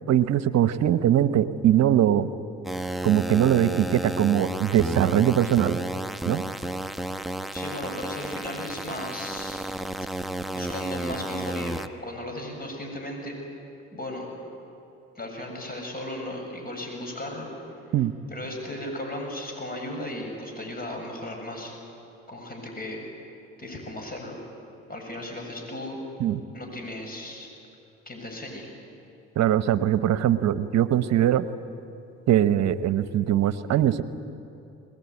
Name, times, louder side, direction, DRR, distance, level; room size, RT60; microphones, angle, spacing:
voice 1, 0.1-2.3 3.0-5.8 6.2-6.4 17.9-18.1 26.2-26.4 29.4-31.5 32.3-34.0, right 11 dB, 60° right, 13 dB, 1.1 m, -21 dB
sound 1, 2.6-11.9, right 1 dB, ahead, 1.0 m, -32 dB
voice 2, 7.5-9.6 10.5-13.4 13.9-14.3 15.2-17.5 18.3-21.7 22.3-23.0 23.6-24.4 24.9-26.0 26.5-27.5 28.1-28.7, left 1 dB, 30° left, 2 dB, 7.6 m, -36 dB
22.5 x 20.0 x 9.8 m, 2.8 s
supercardioid pair, 70°, 30 cm